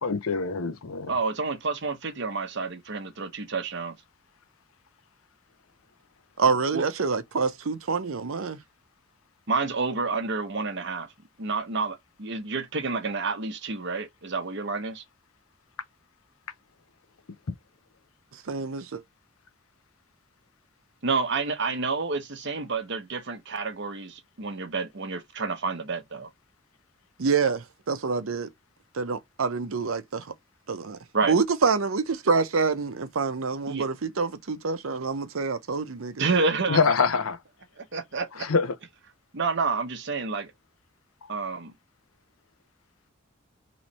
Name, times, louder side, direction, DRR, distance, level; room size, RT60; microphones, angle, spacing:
voice 1, 0.0-1.2 36.7-37.4 38.4-38.8, left 5 dB, 85° left, 0.7 m, -25 dB
voice 2, 1.1-3.9 6.7-6.8 9.5-11.1 11.4-15.0 21.0-26.3 31.1-31.4 33.7-33.8 36.2-36.8 37.9-38.5 39.3-40.5 41.3-41.7, right 4 dB, 55° right, 1.0 m, -29 dB
voice 3, 6.4-8.6 18.5-19.0 27.2-28.5 28.9-30.3 30.7-31.0 31.3-36.3, right 5 dB, 75° right, 0.7 m, -26 dB
3.2 x 3.1 x 4.0 m
head